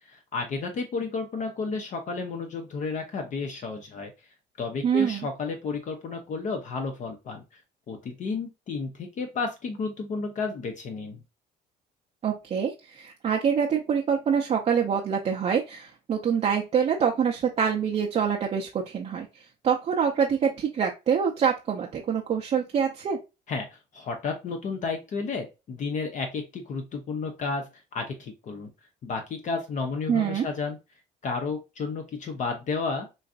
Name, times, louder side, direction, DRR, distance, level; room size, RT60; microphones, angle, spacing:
voice 1, 0.0-4.1 4.6-7.6 7.9-11.2 23.5-27.7 27.9-28.7 29.0-30.8 31.2-33.1, left 4 dB, 45° left, 4 dB, 0.6 m, -32 dB
voice 2, 4.8-5.3 12.2-19.3 19.6-23.2 30.1-30.5, right 7 dB, 40° right, 0 dB, 0.5 m, -25 dB
3.9 x 2.5 x 2.4 m, 0.27 s
cardioid pair, 110°, 17 cm